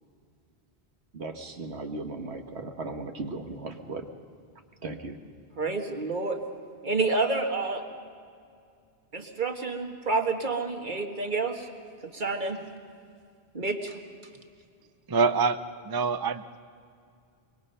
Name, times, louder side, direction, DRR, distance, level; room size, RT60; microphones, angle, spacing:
voice 1, 1.1-4.1 4.8-5.2, right 3 dB, 85° right, 4 dB, 1.7 m, -37 dB
voice 2, 5.6-6.4 6.8-7.8 9.1-11.7 12.0-12.6 13.5-14.0, right 3 dB, 50° right, 4 dB, 1.8 m, -29 dB
voice 3, 15.1-16.4, right 4 dB, 30° right, 11 dB, 0.5 m, -25 dB
24.5 x 23.0 x 5.6 m, 2.3 s
omnidirectional pair, 1.1 m